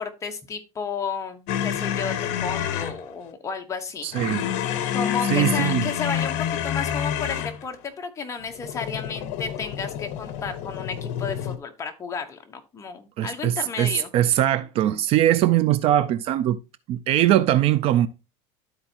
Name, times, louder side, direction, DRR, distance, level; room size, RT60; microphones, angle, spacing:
voice 1, 0.0-4.1 4.9-14.1, left 5 dB, 20° left, 1.0 m, -32 dB
sound 1, 1.5-3.0 4.1-7.6 8.6-11.6, left 9 dB, 55° left, 1.0 m, -28 dB
voice 2, 4.0-4.5 5.3-5.8 13.2-16.6 16.9-18.1, right 12 dB, 40° right, 0.4 m, -21 dB
13.0 x 4.4 x 2.8 m
cardioid pair, 150°, 15 cm